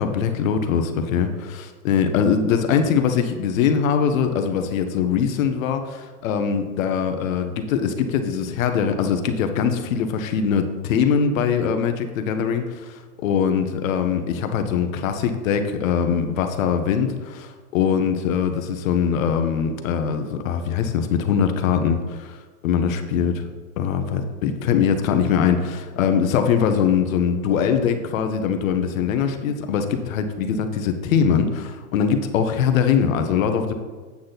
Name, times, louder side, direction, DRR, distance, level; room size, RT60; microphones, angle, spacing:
voice 1, 0.0-22.4 22.6-23.5 23.8-33.7, left 7 dB, 60° left, 7 dB, 1.1 m, -22 dB
8.6 x 6.3 x 4.0 m, 1.4 s
hypercardioid pair, 145°, 45 cm